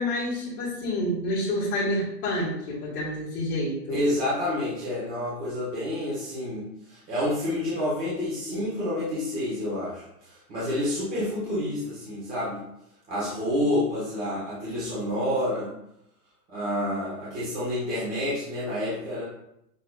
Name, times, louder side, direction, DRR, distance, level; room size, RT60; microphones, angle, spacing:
voice 1, 0.0-4.0, left 1 dB, 30° left, -10 dB, 1.7 m, -28 dB
voice 2, 3.9-12.6 13.1-15.7 16.5-19.2, left 1 dB, 20° right, -10 dB, 1.3 m, -29 dB
6.7 x 3.2 x 2.4 m, 0.81 s
hypercardioid pair, 140°, 48 cm